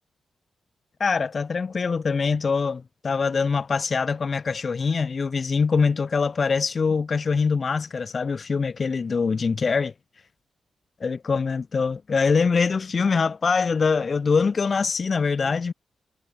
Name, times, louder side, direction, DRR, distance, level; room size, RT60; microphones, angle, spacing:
voice 1, 1.0-9.9 11.0-15.7, left 5 dB, 45° left, 0.3 m, -23 dB
cardioid pair, 100°, 0 cm